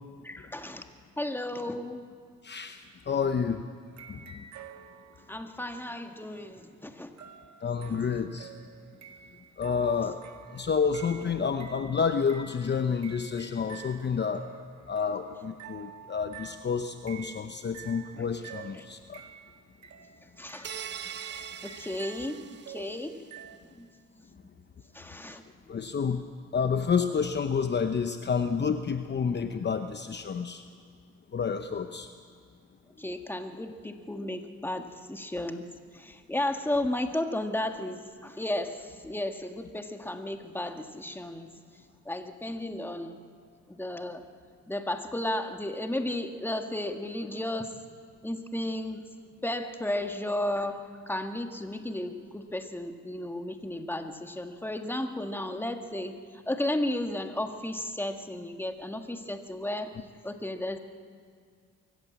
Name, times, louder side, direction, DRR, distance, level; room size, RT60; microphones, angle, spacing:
voice 1, 0.2-0.8 1.2-2.1 5.3-7.1 7.9-8.0 18.1-18.3 18.7-18.9 20.4-20.7 21.6-22.4 22.7-23.2 23.8-23.9 24.5-25.4 33.0-35.7 35.9-41.5 42.0-43.2 43.7-44.2 44.7-47.7 48.2-49.1 49.4-56.2 56.5-59.9 60.2-60.8, left 1 dB, 5° left, 6 dB, 1.6 m, -34 dB
voice 2, 2.4-3.6 4.1-4.4 7.6-8.5 9.6-10.2 10.5-14.5 14.9-19.2 25.7-26.2 26.5-30.6 31.3-32.1, left 6 dB, 35° left, 8 dB, 0.9 m, -29 dB
sound 1, 3.9-5.5 7.2-23.6, right 8 dB, 65° right, 1.7 m, -49 dB
sound 2, 20.6-23.1, right 8 dB, 35° right, 0.6 m, -41 dB
24.0 x 15.0 x 8.4 m, 2.1 s
cardioid pair, 90°, 30 cm